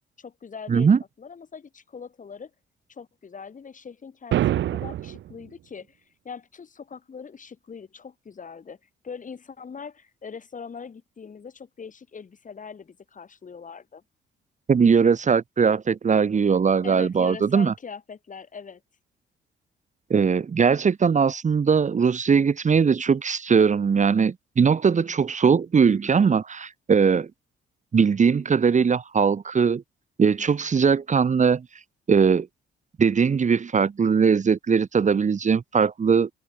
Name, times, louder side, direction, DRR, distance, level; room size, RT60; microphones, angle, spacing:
voice 1, 0.2-0.9 1.2-2.5 2.9-4.4 4.7-8.8 9.0-14.0 16.8-18.8, left 6 dB, 40° left, 6.2 m, -41 dB
sound 1, 4.3-5.3, right 12 dB, 70° right, 0.9 m, -25 dB
voice 2, 14.7-17.7 20.1-27.3 27.9-29.8 30.2-31.7 32.1-32.5 33.0-36.3, right 6 dB, 35° right, 1.7 m, -20 dB
cardioid pair, 90°, 20 cm